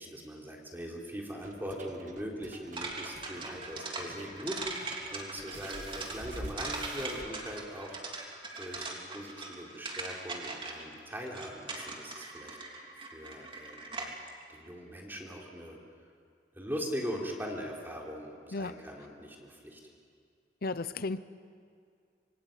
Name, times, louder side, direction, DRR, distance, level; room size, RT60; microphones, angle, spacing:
voice 1, 0.0-8.0 8.5-14.1 14.5-15.8 16.5-19.8, equal, 10° right, -1 dB, 3.7 m, -41 dB
sound 1, 1.4-6.8, right 3 dB, 45° right, 2.0 m, -54 dB
sound 2, 2.7-14.3, right 3 dB, 30° right, 3.2 m, -40 dB
sound 3, 5.5-7.3 8.2-8.3 8.7-8.8, right 1 dB, 85° right, 2.4 m, -44 dB
voice 2, 20.6-21.2, left 3 dB, 55° left, 12 dB, 0.8 m, -33 dB
26.0 x 22.5 x 9.3 m, 2.2 s
head